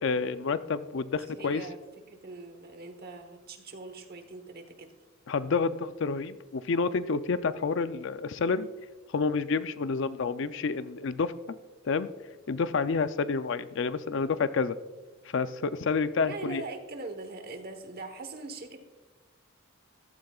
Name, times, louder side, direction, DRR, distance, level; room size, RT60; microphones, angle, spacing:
voice 1, 0.0-1.7 5.3-8.7 9.1-11.3 11.8-12.1 12.5-14.8 15.3-16.6, left 4 dB, 60° left, 13 dB, 0.5 m, -29 dB
voice 2, 1.1-1.8 2.1-4.9 16.2-18.8, right 3 dB, 45° right, 6 dB, 1.2 m, -42 dB
14.5 x 13.0 x 2.4 m, 1.2 s
head